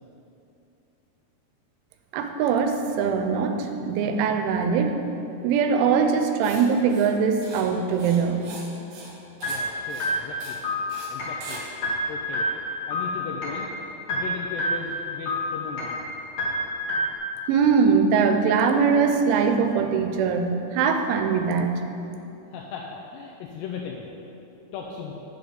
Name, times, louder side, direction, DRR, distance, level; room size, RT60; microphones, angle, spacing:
voice 1, 2.1-5.0 5.4-8.4 17.5-21.8, right 6 dB, 85° right, 6 dB, 3.1 m, -22 dB
Writing, 6.4-6.6 6.9-7.1 7.4-7.6 7.9-8.7 8.9-9.1 9.4-9.6 9.9-10.1 10.4-10.6 10.9-11.1 11.4-11.6, right 3 dB, 65° right, 2.2 m, -41 dB
sound 1, 9.4-17.2, left 1 dB, 65° left, 1.6 m, -29 dB
voice 2, 9.5-10.6 11.1-11.6 12.1-12.5 12.9-13.7 14.1-16.0 22.5-24.1 24.7-25.1, left 6 dB, 85° left, -1 dB, 2.4 m, -37 dB
7.8 x 7.2 x 5.1 m, 2.8 s
omnidirectional pair, 5.4 m